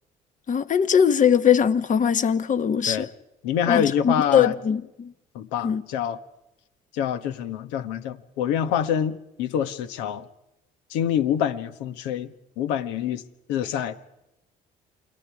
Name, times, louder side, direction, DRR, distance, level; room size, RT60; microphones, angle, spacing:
voice 1, 0.5-3.1 3.7-5.1 5.6-5.8, left 8 dB, 45° left, 1.4 m, -21 dB
voice 2, 3.4-4.5 5.3-6.2 6.9-10.3 10.9-13.2 13.5-14.0, left 9 dB, 85° left, 1.4 m, -26 dB
28.5 x 21.5 x 4.9 m
supercardioid pair, 70°, 18 cm